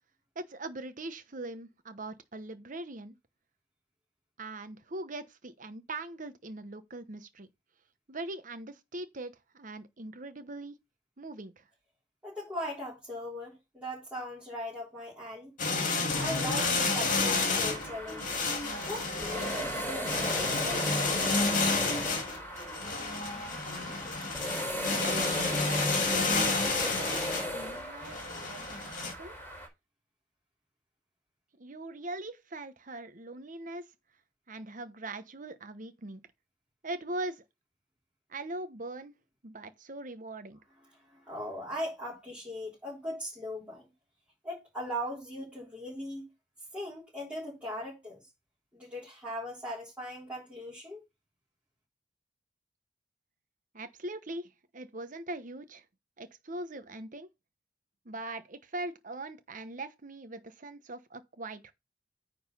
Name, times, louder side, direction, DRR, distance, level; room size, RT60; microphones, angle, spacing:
voice 1, 0.3-3.1 4.4-7.5 8.1-10.7 11.2-11.6 25.0-28.2 28.4-28.9 29.2-29.3 31.6-33.9 34.5-36.2 36.8-37.4 38.3-39.1 39.4-40.6 53.7-55.8 56.2-57.3 58.0-61.7, right 2 dB, 45° right, 1.0 m, -41 dB
voice 2, 12.2-15.5 16.2-18.3 18.8-21.1 40.8-43.9 44.4-46.3 46.7-48.3 48.7-51.0, equal, 10° right, 3.8 m, -39 dB
sound 1, 15.6-29.1, left 3 dB, 45° left, 2.0 m, -30 dB
sound 2, 16.1-29.7, equal, 15° left, 4.4 m, -37 dB
9.4 x 4.0 x 5.5 m
head